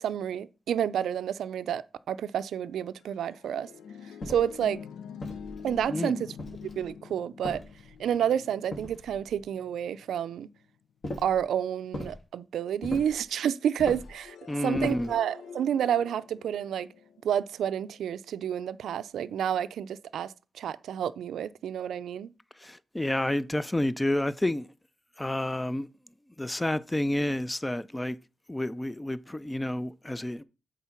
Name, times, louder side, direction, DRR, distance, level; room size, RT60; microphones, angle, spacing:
voice 1, 0.0-3.7 4.3-4.8 5.6-6.3 6.6-7.6 8.0-10.5 11.2-14.4 14.6-16.9 17.2-22.3, right 9 dB, 85° right, 0.4 m, -30 dB
sound 1, 3.0-10.6 13.8-17.9, left 7 dB, 90° left, 0.6 m, -46 dB
Footsteps Boots Wood Mono, 4.2-4.6 5.2-5.9 6.4-6.9 7.4-8.1 8.7-9.4 11.0-11.4 11.9-12.2 12.8-13.2 13.8-14.2 14.7-15.2, left 1 dB, 45° left, 2.8 m, -39 dB
voice 2, 5.9-6.2 14.5-15.1 22.6-24.7 25.2-25.9 26.4-28.2 28.5-30.4, left 1 dB, 15° left, 0.5 m, -29 dB
8.2 x 3.8 x 5.8 m
cardioid pair, 70°, 0 cm